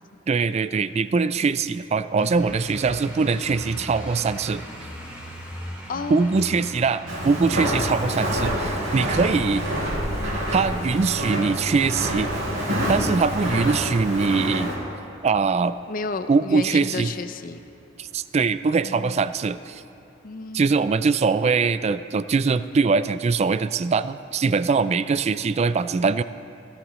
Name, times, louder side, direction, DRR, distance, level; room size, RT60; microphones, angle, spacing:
voice 1, 0.3-4.6 6.1-9.6 10.5-12.3 12.7-14.7 15.2-15.7 16.3-17.1 18.0-19.8 20.5-26.2, right 4 dB, 35° right, 14 dB, 0.3 m, -22 dB
sound 1, 2.2-20.6, equal, 5° right, 2.2 m, -42 dB
voice 2, 5.9-6.6 15.9-17.6 18.8-19.2 20.2-20.7, left 3 dB, 45° left, 9 dB, 0.5 m, -32 dB
Walk footsteps, 7.1-14.8, equal, 80° right, 4.0 m, -27 dB
17.5 x 16.0 x 3.2 m, 2.7 s
head